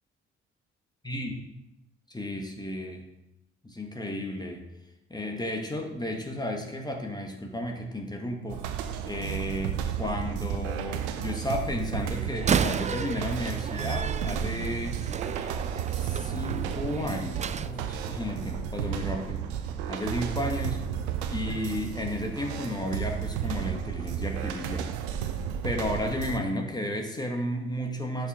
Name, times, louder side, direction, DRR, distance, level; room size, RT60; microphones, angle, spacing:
voice 1, 1.0-1.4 2.1-3.1 3.6-4.6 5.1-8.6 9.0-15.0 15.9-19.4 19.9-20.8 21.3-24.9 25.6-28.3, left 1 dB, 10° left, 2 dB, 1.7 m, -33 dB
sound 1, 8.5-26.4, right 9 dB, 80° right, 0.7 m, -33 dB
Slam, 12.3-17.7, right 7 dB, 20° right, 0.4 m, -32 dB
8.7 x 6.6 x 3.7 m, 0.88 s
hypercardioid pair, 45°, 33 cm